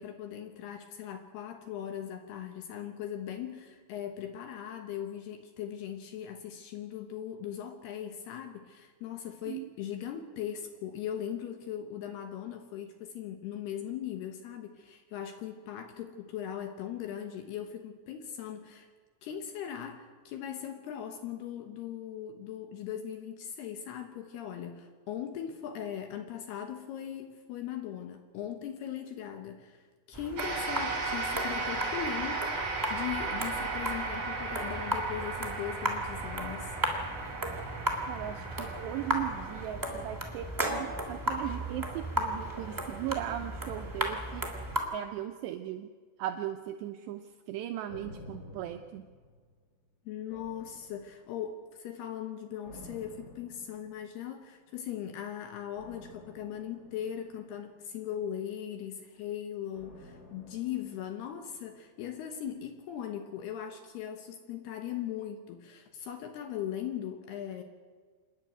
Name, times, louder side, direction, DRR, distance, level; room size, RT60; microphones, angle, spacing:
voice 1, 0.0-18.9 19.2-36.8 50.1-67.6, left 9 dB, 70° left, 7 dB, 2.6 m, -39 dB
sound 1, 30.1-44.8, right 1 dB, 20° right, 0.5 m, -35 dB
sound 2, 30.4-39.7, right 4 dB, 45° right, 6.2 m, -36 dB
voice 2, 38.1-44.5 44.9-45.9 46.2-49.1, right 12 dB, 80° right, 7 dB, 2.5 m, -38 dB
sound 3, 47.9-49.8 50.3-51.6 52.6-54.3 55.7-58.1 59.7-61.9 62.2-62.3, left 1 dB, 20° left, 2.4 m, -52 dB
28.0 x 11.0 x 9.1 m, 1.5 s
omnidirectional pair, 5.7 m